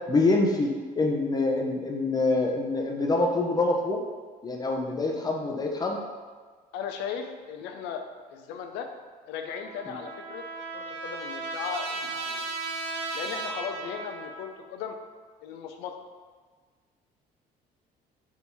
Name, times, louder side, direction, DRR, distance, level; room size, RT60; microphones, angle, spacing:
voice 1, 0.1-4.0 4.4-6.0 9.9-10.0, left 2 dB, 25° left, 1 dB, 0.6 m, -25 dB
voice 2, 6.7-8.0 8.3-8.9 9.3-10.4 10.7-12.4 13.1-15.0 15.4-16.0, left 7 dB, 90° left, 5 dB, 0.4 m, -37 dB
Trumpet, 9.5-14.6, right 3 dB, 80° right, 0.5 m, -36 dB
3.5 x 2.7 x 4.4 m, 1.5 s
cardioid pair, 110°, 17 cm